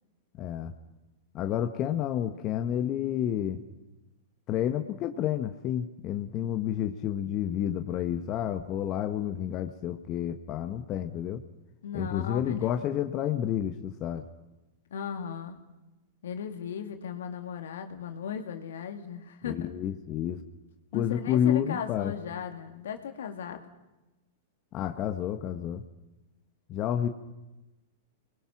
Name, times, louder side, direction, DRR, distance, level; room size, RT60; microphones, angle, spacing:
voice 1, 0.4-0.7 1.3-3.6 4.5-11.4 11.9-14.2 19.4-20.4 20.9-22.1 24.7-25.8 26.7-27.1, left 10 dB, 40° left, 6 dB, 1.3 m, -30 dB
voice 2, 11.8-12.7 14.9-15.6 16.2-19.7 20.9-23.7, left 7 dB, 75° left, 6 dB, 2.5 m, -37 dB
29.0 x 21.0 x 6.1 m, 1.0 s
hypercardioid pair, 110°, 0 cm